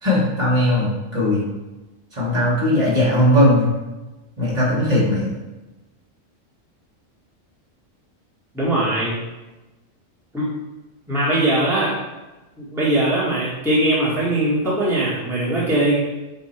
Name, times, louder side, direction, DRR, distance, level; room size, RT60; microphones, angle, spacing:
voice 1, 0.0-1.4 2.1-3.7 4.4-5.3, left 1 dB, 30° right, -6 dB, 2.2 m, -18 dB
voice 2, 8.5-9.2 10.3-10.5 11.1-11.9 12.6-16.0, right 1 dB, ahead, -9 dB, 1.6 m, -20 dB
8.5 x 2.8 x 4.5 m, 1.1 s
omnidirectional pair, 1.4 m